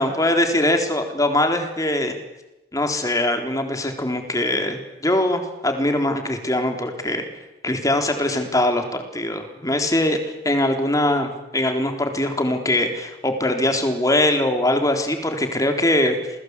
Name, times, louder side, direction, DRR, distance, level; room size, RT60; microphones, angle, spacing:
voice 1, 0.0-2.1 2.7-7.2 7.6-10.2 10.4-16.2, left 1 dB, 20° left, 5 dB, 3.8 m, -22 dB
28.0 x 21.5 x 8.4 m, 0.98 s
head